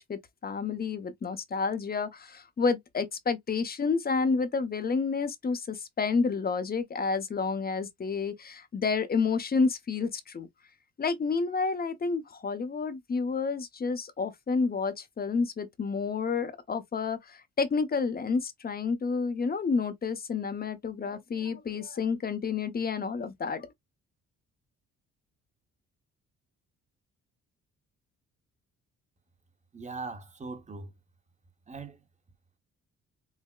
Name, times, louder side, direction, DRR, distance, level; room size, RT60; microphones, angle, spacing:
voice 1, 0.0-10.5 11.0-23.7, left 4 dB, 30° left, 0.7 m, -30 dB
voice 2, 29.7-30.9 31.7-32.0, right 3 dB, 25° right, 0.8 m, -40 dB
5.6 x 2.0 x 2.2 m
cardioid pair, 90°, 30 cm